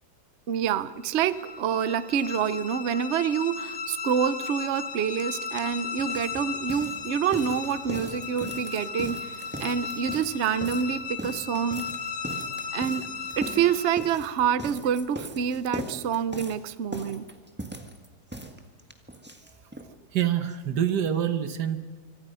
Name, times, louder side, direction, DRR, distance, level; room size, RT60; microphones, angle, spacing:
voice 1, 0.5-11.9 12.7-13.1 13.4-17.3, right 8 dB, 55° right, 0.9 m, -27 dB
sound 1, 1.0-14.4, left 5 dB, 85° left, 2.0 m, -36 dB
sound 2, 5.2-5.3 5.5-19.9 20.2-20.3 20.5-20.6 20.9-21.0, right 1 dB, 5° right, 1.6 m, -39 dB
voice 2, 20.1-21.8, right 9 dB, 90° right, 1.8 m, -26 dB
25.5 x 25.0 x 5.6 m
omnidirectional pair, 1.7 m